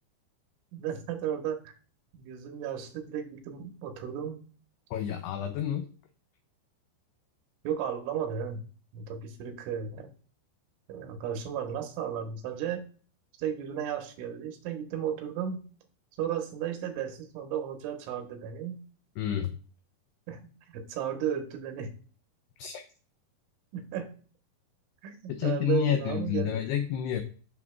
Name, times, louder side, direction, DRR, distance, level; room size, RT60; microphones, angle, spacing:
voice 1, 0.7-1.7 2.1-4.4 7.7-8.6 8.9-10.1 10.9-12.8 13.4-15.6 16.2-18.8 20.3-21.9 23.7-24.1 25.0-26.7, right 9 dB, 90° right, 4 dB, 3.5 m, -34 dB
voice 2, 4.9-5.9 19.2-19.6 22.6-22.8 25.3-27.2, left 9 dB, 90° left, 7 dB, 2.3 m, -29 dB
11.0 x 6.1 x 2.3 m, 0.39 s
omnidirectional pair, 5.4 m